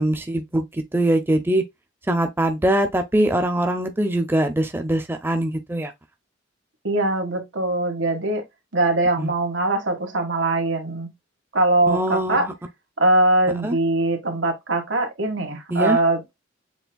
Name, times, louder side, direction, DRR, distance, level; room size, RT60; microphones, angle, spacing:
voice 1, 0.0-1.6 2.1-5.9 9.2-9.3 11.9-12.5 13.6-13.8 15.7-16.0, right 1 dB, 10° right, 0.6 m, -22 dB
voice 2, 6.8-8.4 8.7-11.1 11.5-12.4 13.0-16.2, right 2 dB, 90° right, 1.6 m, -21 dB
7.0 x 3.4 x 2.2 m
head